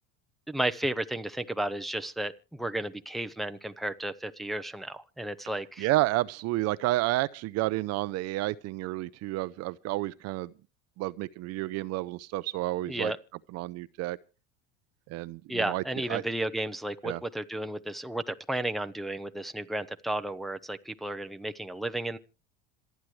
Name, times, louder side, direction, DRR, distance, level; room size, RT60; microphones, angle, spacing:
voice 1, 0.5-5.9 12.9-13.2 15.5-22.2, right 1 dB, ahead, 0.7 m, -33 dB
voice 2, 5.8-10.5 11.0-13.1 13.5-14.2 15.1-15.8 16.1-16.2 17.0-17.2, right 18 dB, 55° right, 0.7 m, -30 dB
26.5 x 9.4 x 3.2 m
supercardioid pair, 130°, 32 cm